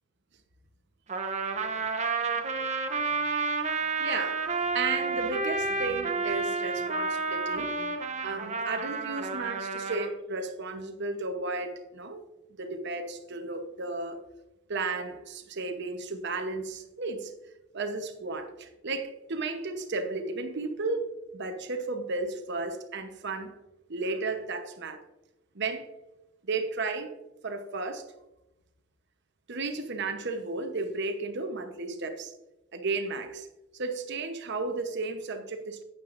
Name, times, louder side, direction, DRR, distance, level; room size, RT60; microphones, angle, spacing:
Trumpet, 1.1-10.1, right 4 dB, 35° right, 0.8 m, -30 dB
voice 1, 4.0-8.0 8.2-12.3 12.6-14.2 14.7-17.3 17.7-23.6 23.9-25.0 25.5-25.9 26.4-27.2 27.4-28.1 29.5-32.3 32.7-33.5 33.7-35.8, right 3 dB, 60° right, 7 dB, 1.0 m, -34 dB
11.5 x 9.1 x 2.6 m, 0.97 s
head